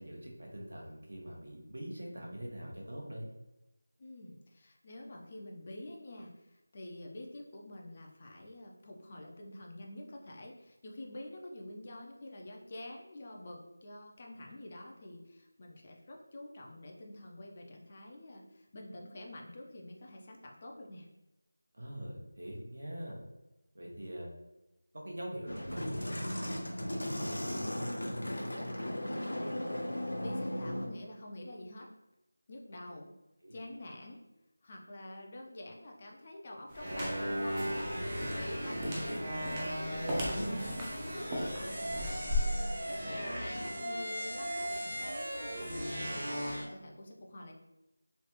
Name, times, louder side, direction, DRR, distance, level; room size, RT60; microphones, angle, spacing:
voice 1, 0.0-3.3 21.7-23.2 23.7-24.3 24.9-28.3 33.4-33.5, equal, 65° right, -1 dB, 1.0 m, -43 dB
voice 2, 4.0-21.1 29.1-31.9 32.5-33.1 33.5-34.2 34.6-38.0 38.3-44.7 45.0-45.7 46.0-47.5, left 1 dB, 30° left, 0 dB, 0.5 m, -48 dB
sound 1, 25.5-30.9, left 1 dB, 90° left, 0.8 m, -36 dB
sound 2, 36.7-42.4, left 1 dB, 15° right, 0.6 m, -38 dB
sound 3, 36.7-46.6, equal, 40° right, 1.1 m, -37 dB
3.2 x 2.3 x 3.0 m, 0.95 s
figure-of-eight pair, 170°, 0 cm